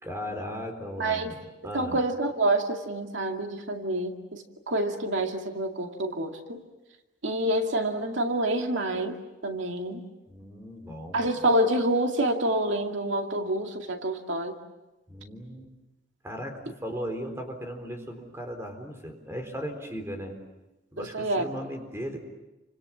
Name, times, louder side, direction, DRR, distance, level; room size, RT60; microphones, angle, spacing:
voice 1, 0.0-1.3 1.6-2.0 10.3-11.3 15.1-15.7 16.2-20.4 20.9-22.3, equal, 15° right, 4 dB, 4.0 m, -37 dB
voice 2, 1.0-1.3 1.7-6.6 7.2-9.2 9.4-10.0 11.1-14.6 21.0-21.4, right 1 dB, 90° right, 3 dB, 2.3 m, -27 dB
29.5 x 26.0 x 7.3 m, 1.0 s
head